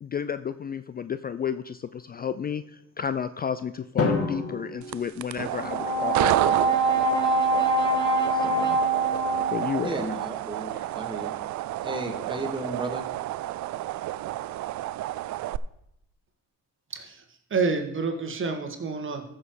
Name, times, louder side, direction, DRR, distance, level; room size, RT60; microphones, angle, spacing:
voice 1, 0.0-6.3 8.3-8.8 9.5-9.9 10.7-10.9, left 7 dB, 30° left, 13 dB, 0.4 m, -32 dB
Drum, 4.0-6.1, left 4 dB, 50° left, 1.8 m, -30 dB
sound 1, 4.8-15.6, right 15 dB, 70° right, 0.5 m, -31 dB
Brass instrument, 5.6-10.0, right 3 dB, 15° left, 2.2 m, -24 dB
voice 2, 9.8-11.3 11.8-13.1, right 2 dB, 15° right, 3 dB, 1.9 m, -34 dB
voice 3, 16.9-17.2 17.5-19.2, right 4 dB, 40° right, 5 dB, 1.6 m, -28 dB
14.5 x 6.4 x 4.7 m, 0.82 s
cardioid pair, 90°, 30 cm